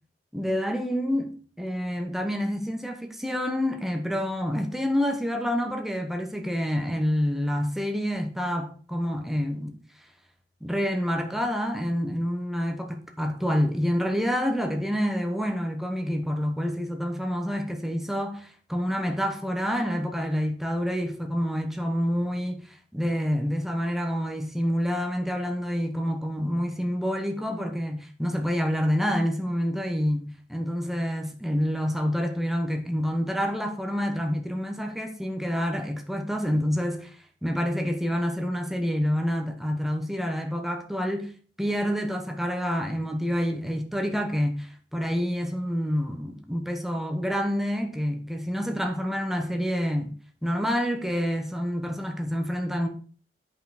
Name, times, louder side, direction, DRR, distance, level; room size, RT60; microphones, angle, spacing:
voice 1, 0.3-1.3 1.6-9.8 10.6-22.6 22.9-41.3 41.6-50.1 50.4-52.9, equal, ahead, 1.1 m, -28 dB
8.7 x 5.5 x 4.9 m
head